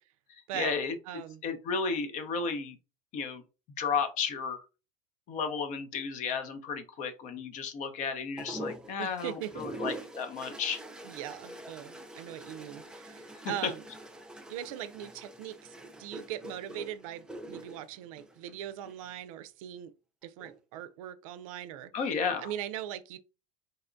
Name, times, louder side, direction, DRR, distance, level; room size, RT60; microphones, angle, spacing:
voice 1, 0.5-0.9 1.4-2.8 3.1-3.4 3.8-4.6 5.3-10.8 13.6-13.7 21.9-22.5, left 5 dB, 45° left, 0.7 m, -33 dB
voice 2, 1.1-1.4 9.0-9.5 11.0-13.8 14.5-15.7 16.0-19.9 20.2-23.2, right 11 dB, 80° right, 0.4 m, -40 dB
sound 1, 8.4-19.0 20.2-20.8, right 1 dB, 5° right, 0.5 m, -44 dB
4.0 x 2.2 x 2.5 m
supercardioid pair, 120°, 17 cm